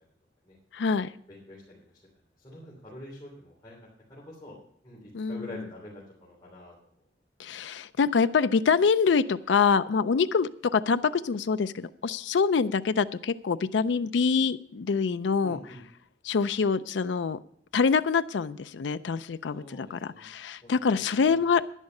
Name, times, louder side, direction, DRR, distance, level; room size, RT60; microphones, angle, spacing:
voice 1, 0.7-1.1 5.1-5.6 7.4-15.6 16.2-17.4 17.7-21.6, left 5 dB, 85° left, 12 dB, 0.4 m, -25 dB
voice 2, 1.3-1.6 2.4-3.8 4.1-4.5 4.8-6.7 15.4-15.8 19.5-20.3 20.6-21.4, left 1 dB, 25° left, -6 dB, 3.4 m, -45 dB
11.0 x 10.5 x 5.4 m, 0.66 s
head